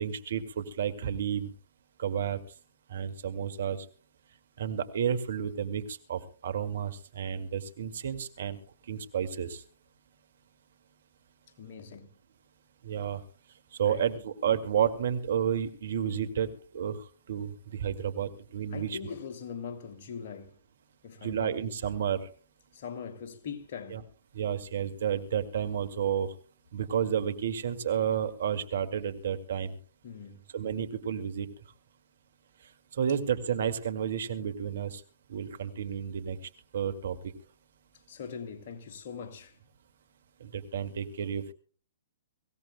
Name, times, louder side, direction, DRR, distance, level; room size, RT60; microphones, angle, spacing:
voice 1, 0.0-1.5 2.0-2.4 2.9-3.8 4.6-8.6 8.9-9.6 12.8-13.2 13.8-16.5 16.7-17.0 17.3-19.0 21.2-22.2 23.9-24.0 24.4-26.3 26.7-29.7 30.5-31.5 33.0-35.0 35.3-36.4 36.7-37.1 40.4-41.5, right 8 dB, 65° right, 2.1 m, -31 dB
voice 2, 11.6-12.1 13.8-14.1 18.7-20.6 21.0-21.5 22.7-24.1 30.0-30.4 38.1-39.6, left 6 dB, 55° left, 2.7 m, -41 dB
24.5 x 16.5 x 2.2 m
hypercardioid pair, 120°, 0 cm